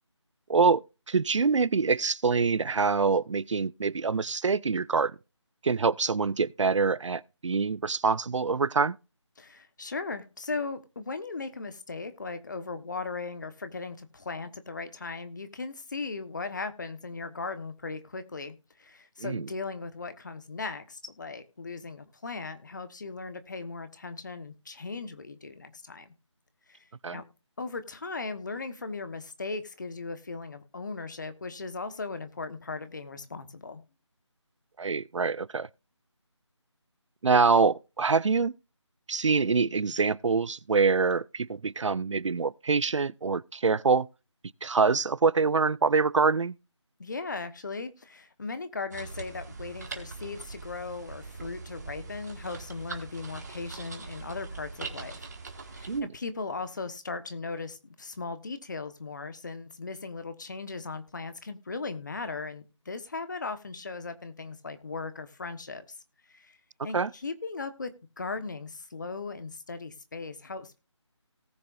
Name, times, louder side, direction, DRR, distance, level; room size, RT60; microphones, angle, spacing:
voice 1, 0.5-5.2 5.6-9.0 19.2-19.5 27.0-27.2 34.8-35.7 37.2-38.5 39.1-44.1 44.6-46.6 55.9-56.1 66.9-67.1, right 4 dB, 75° right, 0.4 m, -25 dB
voice 2, 9.4-26.1 26.7-27.2 27.6-33.8 47.0-55.3 55.7-66.0 66.3-66.6 66.8-67.9 68.2-70.8, left 4 dB, 40° left, 1.2 m, -38 dB
sound 1, 48.9-56.0, right 4 dB, 35° right, 1.9 m, -42 dB
18.5 x 6.6 x 2.5 m
figure-of-eight pair, 165°, 16 cm